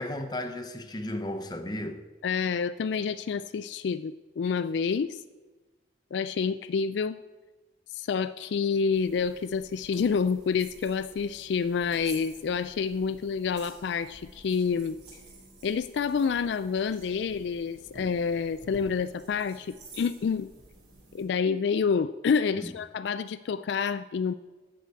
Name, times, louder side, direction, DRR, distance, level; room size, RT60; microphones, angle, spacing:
voice 1, 0.0-2.0 22.6-22.7, left 1 dB, 20° left, 0.8 m, -34 dB
voice 2, 2.2-5.2 6.1-7.2 7.9-15.0 15.6-20.5 21.1-24.3, left 6 dB, 65° left, 0.3 m, -28 dB
sound 1, 8.9-21.2, right 2 dB, 70° right, 4.1 m, -51 dB
14.0 x 4.9 x 8.1 m
head